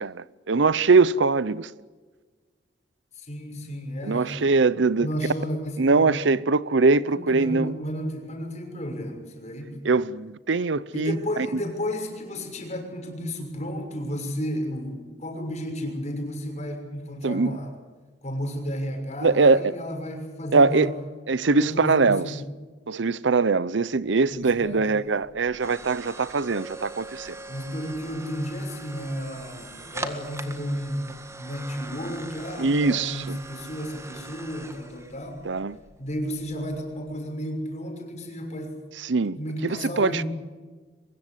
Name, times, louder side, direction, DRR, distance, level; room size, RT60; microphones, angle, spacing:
voice 1, 0.0-1.7 4.0-5.1 5.8-7.7 9.8-11.2 17.2-17.6 19.2-19.7 20.5-20.9 21.3-22.2 22.9-27.4 32.6-33.4 35.4-35.8 39.0-39.4 39.6-40.2, right 4 dB, 70° right, 0.7 m, -22 dB
voice 2, 3.1-4.5 5.0-6.2 7.0-9.8 10.9-17.8 18.2-20.9 21.6-22.4 24.3-25.2 27.5-35.4 36.0-38.7 39.4-40.3, equal, 40° left, 6.5 m, -33 dB
sound 1, 24.1-37.1, right 2 dB, 15° right, 1.8 m, -42 dB
23.5 x 22.0 x 8.1 m
head